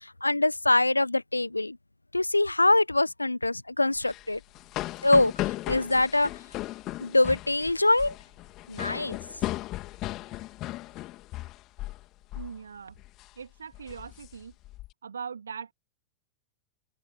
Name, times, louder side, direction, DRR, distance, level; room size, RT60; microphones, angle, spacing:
voice 1, 0.0-1.8 2.1-4.4 5.0-5.3 5.7-6.3 7.0-8.1 8.7-9.2, left 2 dB, 85° left, 1.3 m, -24 dB
sound 1, 4.0-12.0 12.3-12.6 13.0-13.3 13.7-14.9, left 17 dB, 35° left, 3.4 m, -36 dB
voice 2, 12.3-13.0 13.3-14.5 15.0-15.7, right 6 dB, 70° right, 3.1 m, -40 dB
open air
figure-of-eight pair, 90°, 0 cm